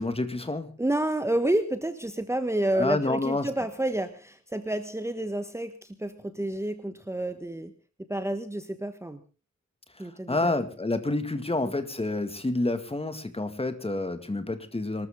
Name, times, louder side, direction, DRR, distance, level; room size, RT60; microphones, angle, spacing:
voice 1, 0.0-0.7 2.7-3.5 10.3-15.1, left 2 dB, 20° left, 9 dB, 2.0 m, -28 dB
voice 2, 0.8-7.7 8.1-9.2 10.0-10.6 11.6-11.7, right 1 dB, 10° right, 9 dB, 1.3 m, -29 dB
25.0 x 13.5 x 3.7 m, 0.34 s
wide cardioid pair, 110°, 30 cm